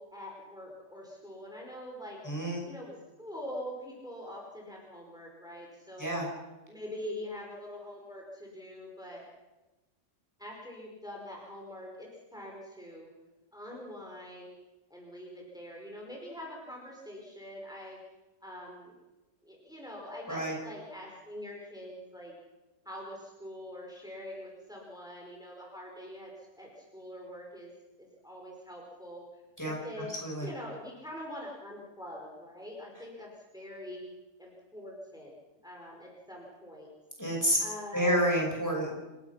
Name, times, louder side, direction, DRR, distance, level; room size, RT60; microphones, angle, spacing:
voice 1, 0.0-2.2 2.6-6.2 6.7-9.3 10.4-13.1 13.5-14.6 14.9-18.0 18.4-19.0 19.4-22.3 22.9-27.7 28.0-29.3 29.6-34.0 34.4-35.3 35.6-36.9 37.6-38.3, left 1 dB, 5° right, -2 dB, 5.2 m, -44 dB
voice 2, 2.3-2.6 6.0-6.2 20.3-20.6 29.6-29.7 30.2-30.5 37.2-37.6 37.9-38.9, equal, 15° left, -1 dB, 5.5 m, -29 dB
28.5 x 17.0 x 5.9 m, 1.1 s
omnidirectional pair, 1.3 m